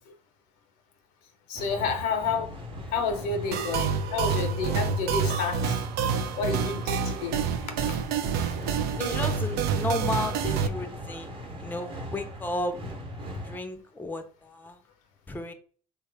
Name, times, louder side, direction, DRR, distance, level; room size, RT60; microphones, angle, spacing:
voice 1, 1.5-2.6 2.9-5.8 6.4-7.4 7.8-8.0 8.4-8.6, left 5 dB, 65° left, 0.7 m, -30 dB
sound 1, 1.5-13.6, left 1 dB, 30° right, 0.9 m, -39 dB
sound 2, 3.5-10.7, right 6 dB, 60° right, 0.4 m, -28 dB
voice 2, 9.0-12.8 13.4-14.8 15.3-15.5, left 1 dB, 10° left, 0.5 m, -33 dB
3.1 x 2.2 x 3.3 m
hypercardioid pair, 55°, 18 cm